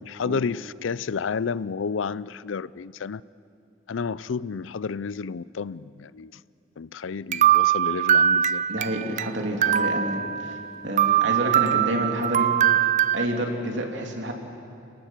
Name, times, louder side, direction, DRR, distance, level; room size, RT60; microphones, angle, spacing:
voice 1, 0.0-3.2 3.9-6.4 6.8-8.6, left 5 dB, 80° left, 19 dB, 0.5 m, -31 dB
sound 1, 7.3-9.3 9.6-10.7 11.0-13.3, right 10 dB, 40° right, 0.5 m, -22 dB
voice 2, 8.7-10.6 10.8-12.5 13.1-14.3, right 1 dB, 70° right, 2 dB, 3.0 m, -28 dB
29.0 x 18.5 x 7.5 m, 2.5 s
head